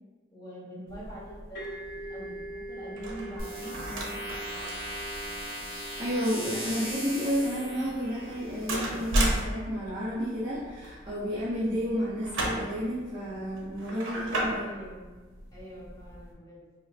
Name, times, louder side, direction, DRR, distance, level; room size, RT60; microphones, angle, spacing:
voice 1, 0.3-2.4 2.7-4.8 14.5-15.1 15.5-16.6, right 1 dB, 20° left, -10 dB, 1.2 m, -44 dB
sound 1, 0.9-16.3, right 1 dB, 80° right, 0.6 m, -36 dB
sound 2, 1.6-9.1, right 1 dB, 50° left, 0.8 m, -44 dB
sound 3, 3.4-9.4, equal, 45° right, 1.4 m, -39 dB
voice 2, 5.6-14.7, equal, 25° right, -11 dB, 0.6 m, -31 dB
3.4 x 2.4 x 2.4 m, 1.3 s
head